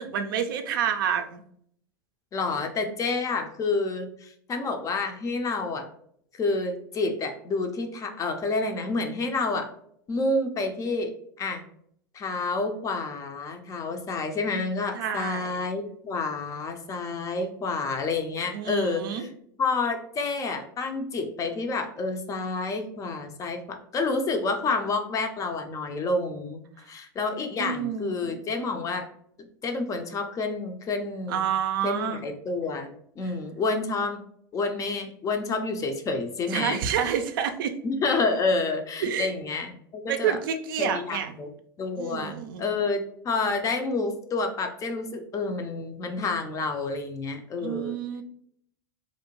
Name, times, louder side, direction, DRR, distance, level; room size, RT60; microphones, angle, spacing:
voice 1, 0.0-1.4 14.9-15.5 18.5-19.2 27.6-28.3 31.3-32.2 36.5-37.8 39.0-39.3 40.1-41.3 42.0-42.6 47.6-48.2, right 8 dB, 70° right, 8 dB, 0.4 m, -28 dB
voice 2, 2.3-5.9 6.4-9.7 10.1-11.1 11.4-11.6 12.1-19.3 19.6-26.6 26.9-29.1 29.4-31.4 31.8-34.2 34.5-36.8 37.8-40.4 40.8-41.5 41.8-48.2, left 3 dB, 30° left, 6 dB, 0.4 m, -29 dB
2.6 x 2.1 x 2.9 m, 0.67 s
hypercardioid pair, 95°, 12 cm